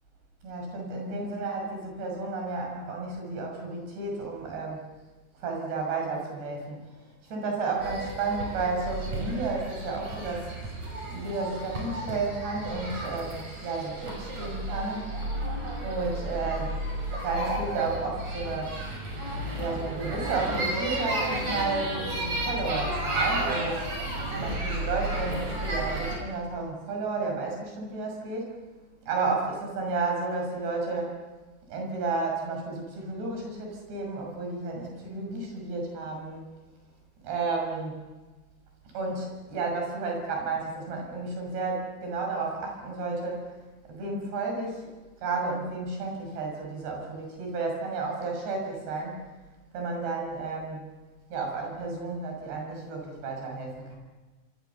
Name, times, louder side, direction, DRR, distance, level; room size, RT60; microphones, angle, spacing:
voice 1, 0.4-4.9 5.4-6.9 7.2-10.5 11.1-15.2 15.8-16.8 17.2-18.8 19.6-23.8 24.4-28.6 29.0-31.2 31.7-36.4 37.2-38.0 38.9-43.5 43.9-44.9 45.2-49.2 49.7-50.9 51.3-54.0, right 3 dB, 90° right, 1 dB, 8.3 m, -32 dB
sound 1, 7.8-26.2, right 1 dB, 40° right, 6.6 m, -32 dB
26.0 x 25.5 x 7.1 m, 1.2 s
omnidirectional pair, 4.6 m